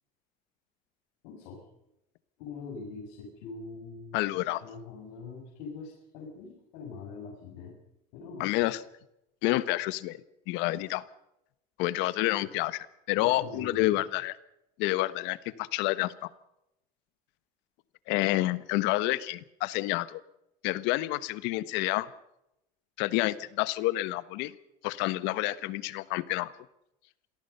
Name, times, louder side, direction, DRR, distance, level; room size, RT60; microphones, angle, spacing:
voice 1, 1.2-1.7 2.4-4.2 4.4-7.8 8.1-8.7 13.1-14.0, left 4 dB, 90° left, -1 dB, 6.8 m, -43 dB
voice 2, 4.1-4.6 8.4-8.8 9.4-10.2 10.5-11.0 11.8-14.3 14.8-16.3 18.1-20.2 20.6-22.1 23.0-24.5 24.8-26.5, left 17 dB, 70° left, 16 dB, 1.3 m, -29 dB
27.0 x 18.5 x 5.6 m, 0.84 s
cardioid pair, 160°, 19 cm